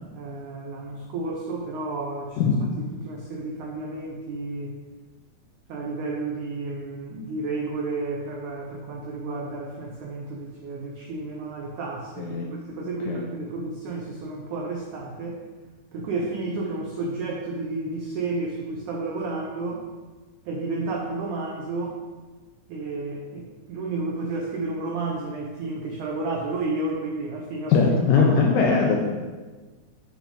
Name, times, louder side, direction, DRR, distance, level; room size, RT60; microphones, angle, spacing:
voice 1, 0.1-2.4 2.8-4.8 5.7-12.4 12.7-15.4 15.9-19.9 20.5-22.0 22.7-27.8 28.1-28.4, right 3 dB, 85° right, -1 dB, 1.7 m, -31 dB
voice 2, 27.7-29.0, left 5 dB, 75° left, 0 dB, 2.1 m, -20 dB
8.4 x 7.0 x 3.9 m, 1.3 s
omnidirectional pair, 4.7 m